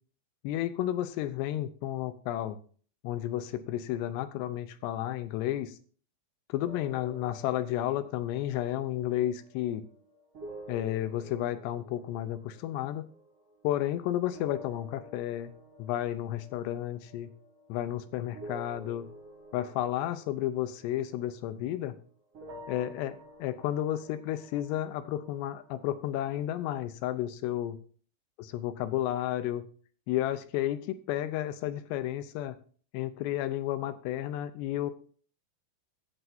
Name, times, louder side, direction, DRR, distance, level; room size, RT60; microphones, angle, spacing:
voice 1, 0.4-2.6 3.0-5.8 6.5-9.8 10.7-13.1 13.6-15.5 15.8-17.3 17.7-19.1 19.5-22.0 22.7-27.8 28.4-29.6 30.1-32.6 32.9-34.9, left 13 dB, 85° left, 12 dB, 2.9 m, -32 dB
sound 1, 6.6-14.0 14.3-22.0 22.3-26.4, equal, 35° right, 4.6 m, -50 dB
15.0 x 7.9 x 2.7 m, 0.43 s
omnidirectional pair, 5.0 m